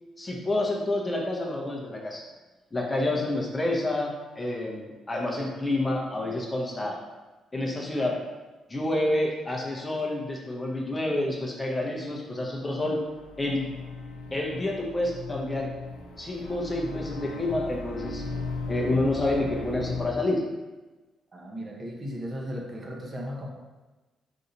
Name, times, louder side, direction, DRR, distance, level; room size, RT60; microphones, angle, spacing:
voice 1, 0.2-2.2 2.7-7.0 7.5-8.2 8.7-13.0 13.4-13.7 14.3-15.7 16.2-18.2 18.7-20.4, left 1 dB, 20° left, -2 dB, 0.7 m, -28 dB
sound 1, 12.6-20.1, left 3 dB, 90° left, 0.6 m, -37 dB
voice 2, 21.3-23.5, equal, 35° right, -1 dB, 0.8 m, -36 dB
3.9 x 2.7 x 3.9 m, 1.2 s
cardioid pair, 90°, 0 cm